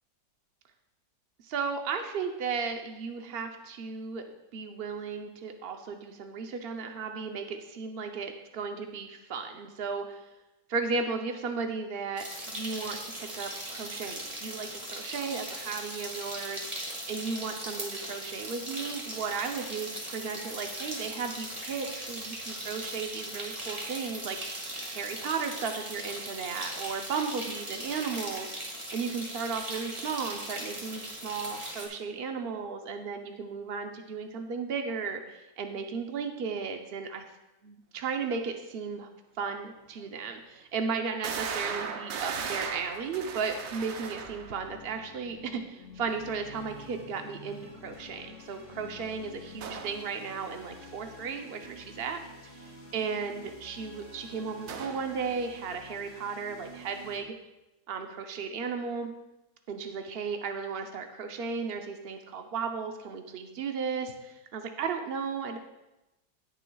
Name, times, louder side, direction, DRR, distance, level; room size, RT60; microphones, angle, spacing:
voice 1, 1.4-4.2 4.5-10.3 10.7-16.6 17.1-24.6 24.9-28.5 28.9-37.2 37.6-39.1 39.4-57.3 57.9-59.1 59.7-65.6, right 5 dB, 85° right, 5 dB, 0.5 m, -35 dB
sound 1, 12.2-31.9, right 1 dB, 20° right, 1.8 m, -39 dB
sound 2, 39.6-39.7 40.3-40.4 41.2-44.7 49.6-50.0 54.7-55.2, right 6 dB, 60° right, 0.9 m, -37 dB
sound 3, 42.4-57.2, left 2 dB, 30° left, 1.6 m, -49 dB
18.0 x 6.6 x 2.3 m, 0.97 s
omnidirectional pair, 2.0 m